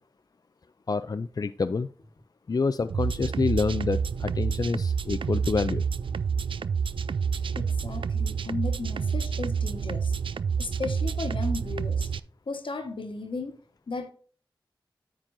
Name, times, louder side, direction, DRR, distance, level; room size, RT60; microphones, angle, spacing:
voice 1, 0.9-1.9 2.5-5.8, left 4 dB, 45° left, 0.4 m, -27 dB
sound 1, 2.9-12.2, right 6 dB, 80° right, 0.4 m, -28 dB
voice 2, 7.5-10.2 10.6-12.1 12.5-13.6 13.9-14.1, left 3 dB, 75° left, 1.3 m, -35 dB
9.9 x 7.5 x 2.6 m
wide cardioid pair, 50°, 9 cm